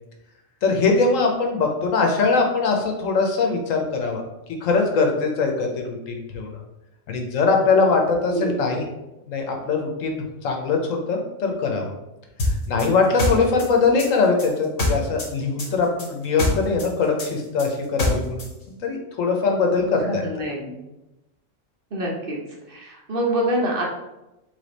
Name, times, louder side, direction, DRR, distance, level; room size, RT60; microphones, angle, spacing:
voice 1, 0.6-4.2 4.6-6.6 7.1-8.8 9.2-11.9 12.4-18.5 18.8-20.2, left 4 dB, 70° left, 2 dB, 1.1 m, -22 dB
sound 1, 12.4-15.3 15.6-18.5, left 1 dB, 45° left, 1.1 m, -24 dB
voice 2, 20.0-20.7 21.9-22.4 22.7-23.8, right 1 dB, 45° right, -2 dB, 1.0 m, -25 dB
3.6 x 3.3 x 3.9 m, 0.95 s
omnidirectional pair, 1.5 m